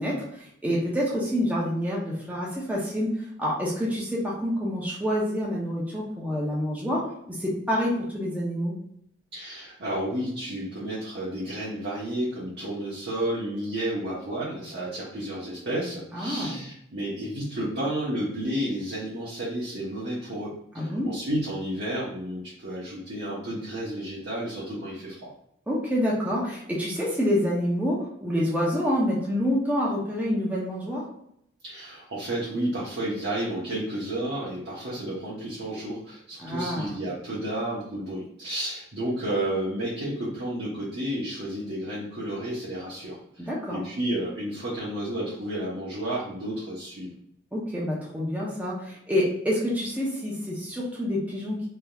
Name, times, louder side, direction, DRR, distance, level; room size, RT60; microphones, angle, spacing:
voice 1, 0.0-3.1 3.4-8.7 16.1-16.6 20.8-21.1 25.7-31.1 36.4-36.9 43.4-43.8 47.5-51.7, equal, 10° right, -5 dB, 0.6 m, -27 dB
voice 2, 9.3-25.3 31.6-47.1, right 1 dB, 60° right, -8 dB, 0.9 m, -31 dB
3.4 x 2.8 x 2.3 m, 0.72 s
head